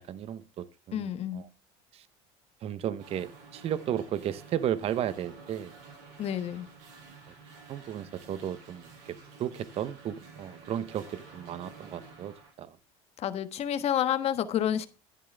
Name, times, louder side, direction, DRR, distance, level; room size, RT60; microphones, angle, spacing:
voice 1, 0.0-1.5 1.9-2.1 2.6-5.7 7.7-12.8, right 10 dB, 45° right, 0.9 m, -34 dB
voice 2, 0.9-1.4 6.2-6.7 13.2-14.9, left 10 dB, 45° left, 1.4 m, -29 dB
sound 1, 3.0-12.5, right 4 dB, 80° right, 6.5 m, -51 dB
11.5 x 10.5 x 3.4 m
cardioid pair, 125°, 14 cm